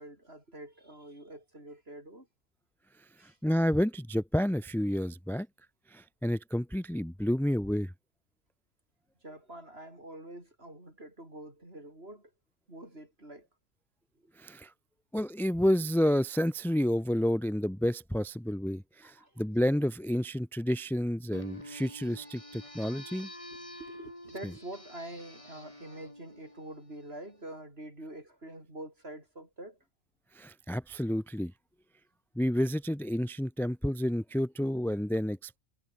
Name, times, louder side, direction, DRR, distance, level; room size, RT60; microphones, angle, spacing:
voice 1, 0.0-2.3 3.2-3.4 9.2-12.3 12.7-13.5 14.1-14.3 19.0-19.4 23.8-29.8, right 1 dB, 50° right, 8.2 m, -46 dB
voice 2, 3.2-5.5 5.9-7.9 14.4-14.7 15.1-23.3 30.3-31.5 32.3-35.6, equal, ahead, 0.8 m, -30 dB
sound 1, 21.3-27.3, left 1 dB, 25° left, 4.7 m, -48 dB
omnidirectional pair, 1.4 m